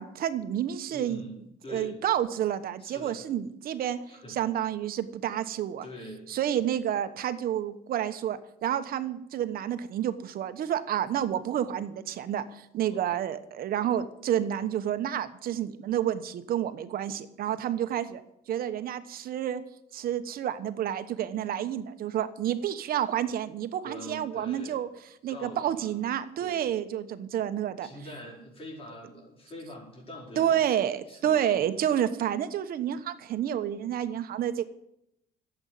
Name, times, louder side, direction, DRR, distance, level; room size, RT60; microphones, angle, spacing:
voice 1, 0.0-1.2 1.7-4.0 4.3-5.8 6.3-18.2 18.5-19.6 19.9-24.9 25.2-27.9 30.4-34.6, right 10 dB, 60° right, 11 dB, 1.1 m, -29 dB
voice 2, 0.9-2.0 2.8-3.2 4.1-4.4 5.8-6.3 12.9-13.3 23.8-24.8 25.3-25.9 26.4-26.7 27.8-30.7 31.1-31.8, equal, 35° left, -1 dB, 4.8 m, -44 dB
11.5 x 8.0 x 9.5 m, 0.81 s
cardioid pair, 110°, 17 cm